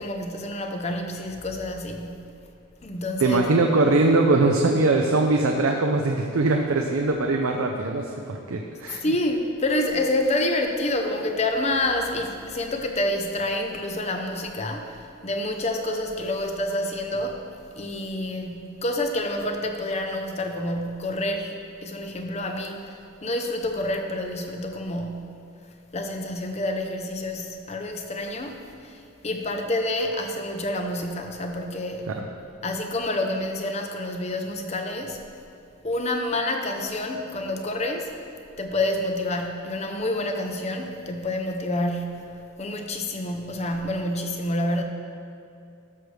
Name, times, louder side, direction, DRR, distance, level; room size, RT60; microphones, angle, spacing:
voice 1, 0.0-2.3 2.8-3.5 8.9-17.4 17.8-25.4 25.9-32.1 32.6-35.2 35.8-38.1 38.6-44.8, left 1 dB, 30° left, 4 dB, 0.6 m, -28 dB
voice 2, 3.2-9.1, right 2 dB, 85° right, 2 dB, 0.6 m, -21 dB
13.0 x 6.3 x 3.3 m, 2.5 s
head